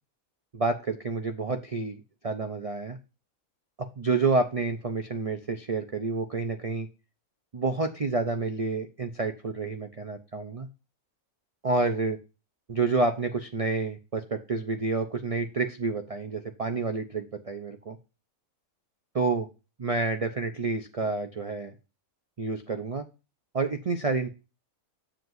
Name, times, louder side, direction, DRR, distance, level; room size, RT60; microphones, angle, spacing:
voice 1, 0.5-2.0 2.2-3.0 4.0-6.9 7.5-10.7 11.6-12.2 12.7-17.9 19.1-19.5 19.8-21.7 22.4-23.0 23.5-24.3, right 3 dB, 70° right, 7 dB, 0.3 m, -29 dB
7.7 x 7.5 x 2.6 m, 0.30 s
omnidirectional pair, 1.6 m